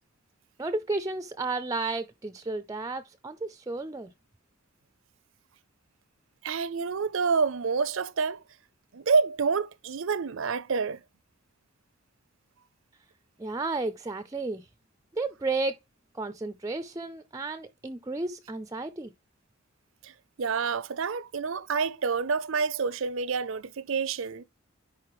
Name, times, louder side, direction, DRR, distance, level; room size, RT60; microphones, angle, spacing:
voice 1, 0.6-4.1 13.4-14.7 15.1-15.7 16.1-19.1, right 3 dB, 15° right, 0.4 m, -32 dB
voice 2, 6.4-8.4 8.9-11.0 20.0-20.1 20.4-24.4, right 5 dB, 65° right, 0.5 m, -28 dB
10.5 x 4.1 x 3.1 m
head